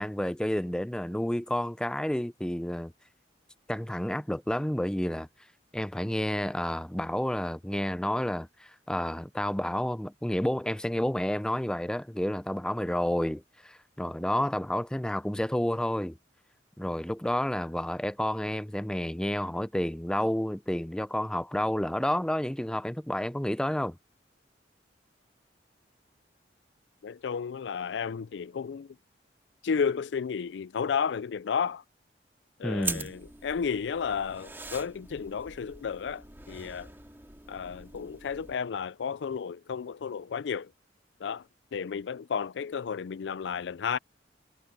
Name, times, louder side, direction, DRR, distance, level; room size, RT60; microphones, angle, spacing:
voice 1, 0.0-2.9 3.7-5.3 5.7-8.5 8.9-16.2 16.8-24.0 32.6-33.1, left 1 dB, 5° left, 0.4 m, -30 dB
voice 2, 27.0-29.0 29.6-31.8 32.6-36.9 37.5-40.7 41.2-41.4 41.7-44.0, left 6 dB, 80° left, 0.4 m, -32 dB
sound 1, 32.8-38.5, right 3 dB, 15° right, 2.2 m, -42 dB
head